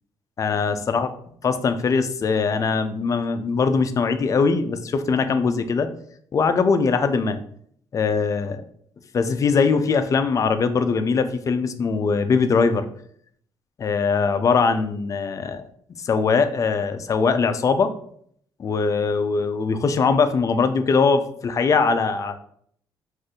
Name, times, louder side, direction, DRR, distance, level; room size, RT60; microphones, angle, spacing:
voice 1, 0.4-1.1 1.4-5.9 6.3-7.4 7.9-8.6 9.1-12.9 13.8-15.7 16.0-17.9 18.6-22.3, left 5 dB, 40° left, 10 dB, 0.3 m, -21 dB
2.6 x 2.4 x 3.6 m, 0.65 s
cardioid pair, 85°, 8 cm